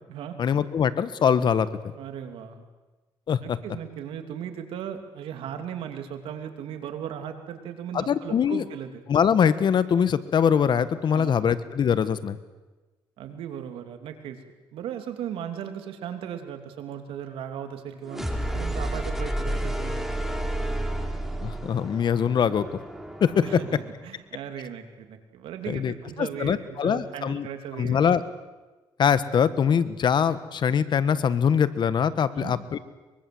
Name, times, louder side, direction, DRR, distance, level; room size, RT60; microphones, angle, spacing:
voice 1, 0.4-1.9 3.3-3.6 7.9-8.6 9.1-12.4 21.4-22.7 23.2-23.4 25.7-27.5 27.8-28.2 29.0-32.8, left 7 dB, 55° left, 13 dB, 1.5 m, -23 dB
voice 2, 2.0-2.7 3.4-9.0 11.1-11.4 13.2-14.4 14.7-18.3 18.5-20.2 23.4-28.0 32.3-32.5, right 9 dB, 80° right, 6 dB, 3.0 m, -37 dB
sound 1, 18.1-23.9, right 1 dB, 5° right, 3.5 m, -31 dB
23.5 x 23.0 x 7.9 m, 1.2 s
cardioid pair, 85°, 9 cm